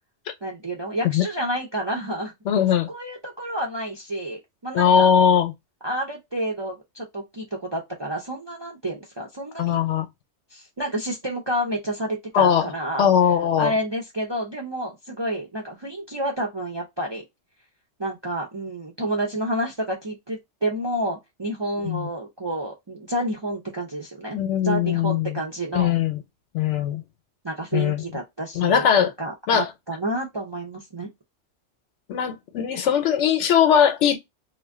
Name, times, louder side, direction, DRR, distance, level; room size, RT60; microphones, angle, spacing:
voice 1, 0.4-2.3 2.7-5.1 5.8-9.8 10.5-13.1 13.6-17.2 18.0-24.4 24.6-25.9 27.4-31.1, right 1 dB, 35° right, 0.4 m, -29 dB
voice 2, 2.5-2.9 4.7-5.5 9.6-10.1 12.3-12.7 13.0-13.7 21.8-22.1 24.3-25.4 25.7-26.2 26.5-27.0 27.7-28.0 28.5-29.1 29.5-29.7 32.1-34.2, left 8 dB, 80° left, 0.9 m, -20 dB
2.5 x 2.1 x 3.4 m
omnidirectional pair, 1.2 m